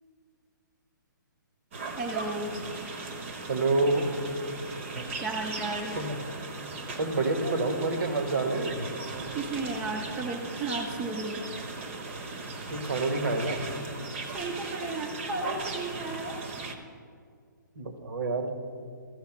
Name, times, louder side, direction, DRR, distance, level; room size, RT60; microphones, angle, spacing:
sound 1, 1.7-16.7, right 3 dB, 35° right, 0.8 m, -38 dB
voice 1, 2.0-2.5 5.2-6.0 9.3-11.4 14.3-16.4, right 3 dB, 10° right, 3 dB, 0.4 m, -34 dB
voice 2, 3.5-4.1 6.0-6.2 7.0-8.9 12.7-13.6 17.8-18.5, right 3 dB, 70° right, 6 dB, 1.3 m, -28 dB
14.0 x 4.8 x 6.0 m, 2.2 s
hypercardioid pair, 165°, 11 cm